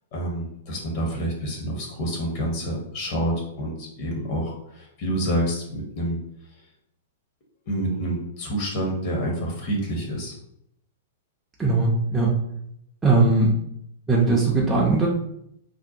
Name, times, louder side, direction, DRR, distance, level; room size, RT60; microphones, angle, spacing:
voice 1, 0.1-6.2 7.7-10.3, right 1 dB, 45° left, -1 dB, 0.8 m, -28 dB
voice 2, 11.6-12.3 13.0-13.6 14.1-15.1, right 3 dB, 10° right, -5 dB, 0.5 m, -19 dB
2.7 x 2.0 x 2.6 m, 0.75 s
figure-of-eight pair, 105°, 0 cm